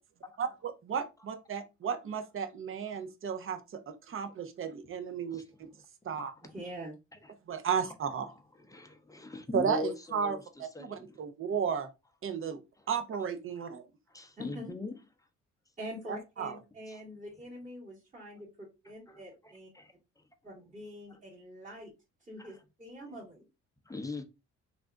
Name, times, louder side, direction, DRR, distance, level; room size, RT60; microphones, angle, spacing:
voice 1, 0.4-5.4 6.0-6.3 7.5-8.3 9.5-10.4 10.8-11.9 12.2-12.6 12.9-13.8 16.4-16.6, right 7 dB, 45° right, 0.7 m, -33 dB
voice 2, 6.4-6.9 14.4-14.7 15.8-19.7 20.4-21.9 22.3-23.4, equal, 25° right, 2.1 m, -45 dB
voice 3, 8.2-10.4 10.7-11.2 14.1-15.0 16.9-17.0 19.1-19.9 22.4-22.6 23.9-24.2, left 3 dB, 10° left, 0.6 m, -41 dB
3.3 x 2.6 x 3.5 m
cardioid pair, 90°, 30 cm